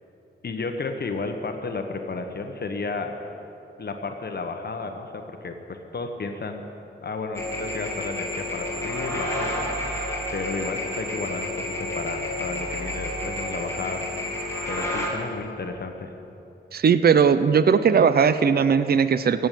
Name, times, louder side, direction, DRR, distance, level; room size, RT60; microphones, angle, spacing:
voice 1, 0.4-3.2 3.8-6.6 7.0-9.9 10.3-14.0 14.7-16.1, left 3 dB, 55° left, 5 dB, 1.1 m, -32 dB
sound 1, 7.3-15.1, left 1 dB, 15° left, 3.2 m, -30 dB
voice 2, 16.7-19.5, right 6 dB, 55° right, 13 dB, 0.6 m, -18 dB
16.0 x 7.9 x 9.1 m, 3.0 s
wide cardioid pair, 90°, 20 cm